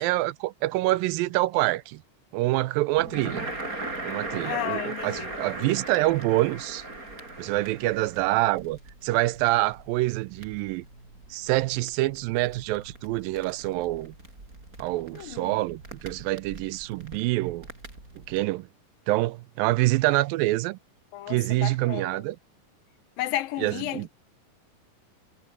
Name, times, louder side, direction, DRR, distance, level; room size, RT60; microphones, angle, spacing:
voice 1, 0.0-2.0 2.3-3.5 4.0-6.8 7.4-10.9 11.3-14.1 14.8-17.7 18.3-18.7 19.1-20.8 21.3-22.4 23.6-24.1, right 18 dB, 90° right, 2.4 m, -26 dB
Crackle, 3.0-18.4, right 2 dB, 25° right, 5.9 m, -40 dB
voice 2, 4.4-5.7 15.1-15.6 21.1-22.2 23.2-24.1, left 15 dB, 85° left, 2.7 m, -33 dB
omnidirectional pair, 4.0 m